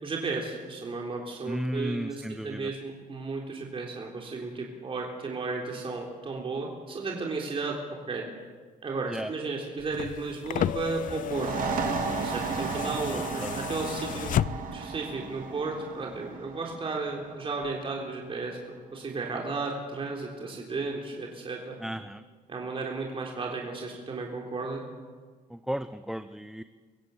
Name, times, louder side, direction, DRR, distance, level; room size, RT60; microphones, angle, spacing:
voice 1, 0.0-7.8 8.1-8.2 8.8-11.5 12.2-14.4 14.7-18.6 18.9-21.8 22.5-24.8, right 3 dB, 30° right, -1 dB, 3.7 m, -34 dB
voice 2, 1.5-2.7 9.1-9.3 13.1-13.6 21.8-22.2 25.5-26.6, equal, ahead, 11 dB, 0.6 m, -34 dB
sound 1, 9.8-14.9 16.1-16.2, left 11 dB, 50° left, 0.5 m, -33 dB
sound 2, 11.2-18.6, right 5 dB, 55° right, 3.3 m, -34 dB
24.5 x 16.0 x 8.0 m, 1.5 s
cardioid pair, 110°, 17 cm